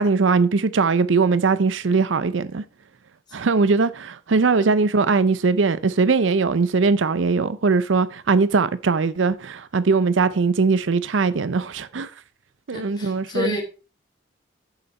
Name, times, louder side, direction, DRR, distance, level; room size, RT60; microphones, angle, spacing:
voice 1, 0.0-2.6 3.3-12.1 12.7-13.6, right 4 dB, 80° right, 0.6 m, -20 dB
voice 2, 12.7-13.6, left 2 dB, 25° left, 2.5 m, -28 dB
8.9 x 7.0 x 4.3 m
head